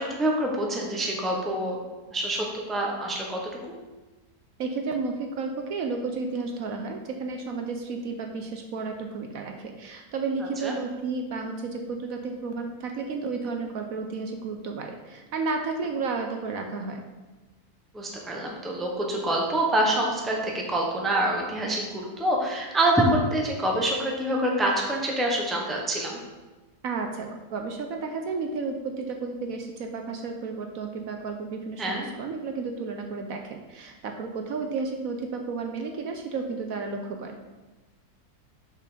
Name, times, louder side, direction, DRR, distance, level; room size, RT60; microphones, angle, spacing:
voice 1, 0.0-1.8 2.1-3.4 3.7-3.8 10.6-10.7 17.9-26.2 31.8-32.1, right 1 dB, ahead, -1 dB, 0.9 m, -26 dB
voice 2, 4.6-17.0 26.8-37.3, right 4 dB, 65° right, 4 dB, 1.1 m, -32 dB
6.5 x 5.9 x 5.0 m, 1.2 s
omnidirectional pair, 1.7 m